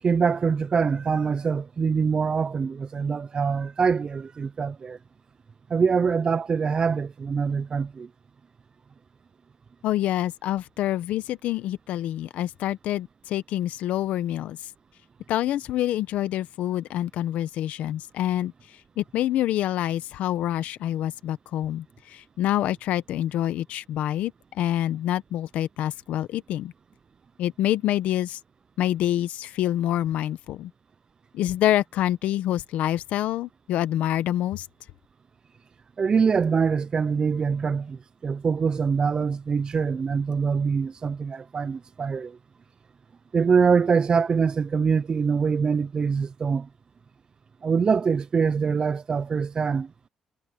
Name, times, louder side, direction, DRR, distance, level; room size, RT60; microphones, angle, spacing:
voice 1, 0.0-5.0 5.7-8.1 36.0-42.4 43.3-46.7 47.6-49.9, right 5 dB, 40° right, 0.5 m, -24 dB
voice 2, 9.8-14.6 15.3-18.5 19.0-26.7 27.4-28.4 28.8-30.7 31.3-34.7, left 13 dB, 85° left, 1.0 m, -26 dB
cardioid pair, 90°, 2 cm